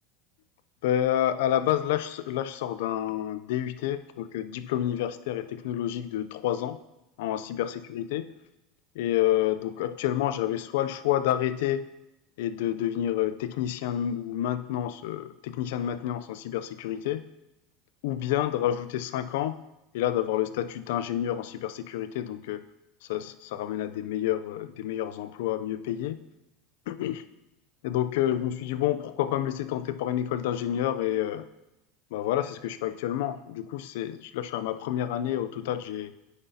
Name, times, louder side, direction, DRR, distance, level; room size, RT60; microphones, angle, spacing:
voice 1, 0.8-6.8 7.2-8.3 9.0-11.8 12.4-17.2 18.0-19.6 19.9-22.6 23.1-26.2 26.9-27.2 27.8-31.5 32.1-36.1, left 11 dB, 75° left, 12 dB, 0.4 m, -29 dB
9.6 x 5.3 x 2.7 m, 0.92 s
hypercardioid pair, 95°, 0 cm